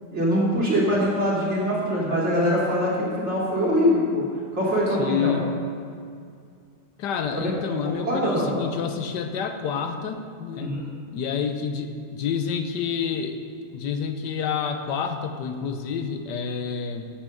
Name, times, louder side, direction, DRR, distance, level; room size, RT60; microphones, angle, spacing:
voice 1, 0.1-4.2 4.5-5.3 7.3-7.5 7.8-8.5 10.6-10.8, equal, 40° right, -6 dB, 2.8 m, -23 dB
voice 2, 5.0-5.5 7.0-10.7 11.1-13.4 13.7-17.1, left 7 dB, 85° left, 7 dB, 1.4 m, -28 dB
8.3 x 7.8 x 6.4 m, 2.2 s
omnidirectional pair, 1.8 m